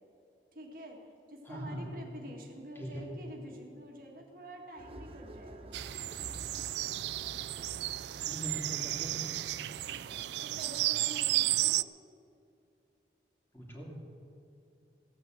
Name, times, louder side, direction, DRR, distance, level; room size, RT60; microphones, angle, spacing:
voice 1, 0.5-1.0 1.3-5.8 9.8-11.8, equal, 50° right, 1 dB, 1.9 m, -48 dB
voice 2, 1.4-1.9 2.7-3.1 8.2-9.2 13.5-14.0, equal, 15° left, -2 dB, 2.6 m, -41 dB
sound 1, 4.8-10.7, right 1 dB, 35° right, 1.0 m, -50 dB
sound 2, 5.7-11.8, right 16 dB, 75° right, 0.3 m, -33 dB
15.5 x 9.3 x 7.8 m, 2.7 s
head